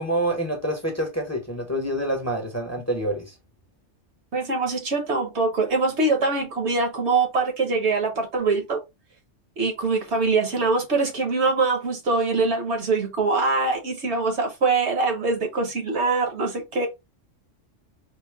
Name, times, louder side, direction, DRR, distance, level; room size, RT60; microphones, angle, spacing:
voice 1, 0.0-3.3, right 1 dB, 15° left, 0.8 m, -27 dB
voice 2, 4.3-8.8 9.6-16.9, right 3 dB, 65° right, 1.2 m, -23 dB
3.8 x 2.2 x 3.4 m
omnidirectional pair, 1.3 m